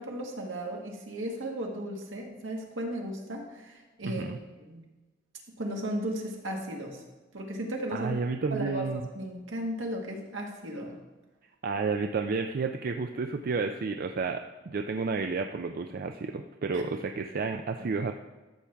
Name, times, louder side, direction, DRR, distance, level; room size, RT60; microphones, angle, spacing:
voice 1, 0.0-4.3 4.6-4.8 5.6-7.0 7.3-8.2 8.5-8.9 9.1-11.0, right 1 dB, 75° right, 0 dB, 1.8 m, -35 dB
voice 2, 4.0-4.4 7.9-9.1 11.6-18.1, right 4 dB, 50° right, 5 dB, 0.4 m, -31 dB
13.0 x 7.1 x 3.5 m, 1.2 s
head